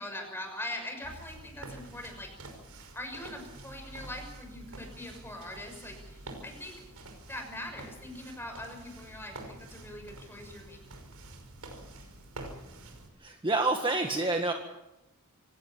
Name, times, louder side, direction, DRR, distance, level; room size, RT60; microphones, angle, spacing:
voice 1, 0.0-2.3 2.9-6.8 7.3-10.8, left 1 dB, 10° left, 4 dB, 6.1 m, -42 dB
sound 1, 1.0-13.1, right 2 dB, 85° right, 5.7 m, -47 dB
voice 2, 13.2-14.5, right 2 dB, 25° right, 3 dB, 1.7 m, -28 dB
26.5 x 17.0 x 7.3 m, 0.92 s
head